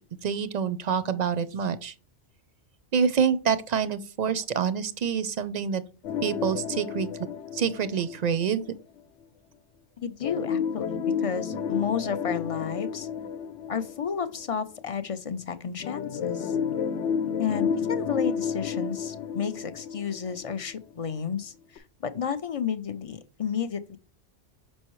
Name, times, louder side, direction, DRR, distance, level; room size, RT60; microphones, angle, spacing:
voice 1, 0.2-1.9 2.9-5.8 6.2-7.1 7.5-8.6, right 7 dB, 50° right, 0.6 m, -26 dB
sound 1, 6.0-8.7 10.2-14.6 15.8-20.7 21.1-21.2 21.8-21.9, left 7 dB, 90° left, 0.9 m, -31 dB
voice 2, 10.0-13.1 13.7-16.6 17.4-24.0, left 7 dB, 45° left, 0.4 m, -32 dB
6.3 x 5.3 x 3.0 m
omnidirectional pair, 1.1 m